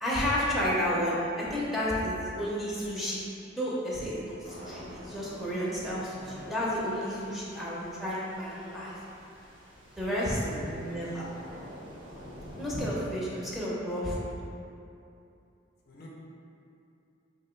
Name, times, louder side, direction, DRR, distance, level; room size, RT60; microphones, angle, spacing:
voice 1, 0.0-3.3 3.6-8.9 10.0-11.2 12.6-14.3, equal, ahead, -8 dB, 0.7 m, -31 dB
sound 1, 4.4-12.8, equal, 65° right, 1.5 m, -47 dB
voice 2, 10.0-11.2 15.9-16.1, left 1 dB, 55° left, -4 dB, 0.6 m, -45 dB
2.9 x 2.8 x 4.4 m, 2.7 s
head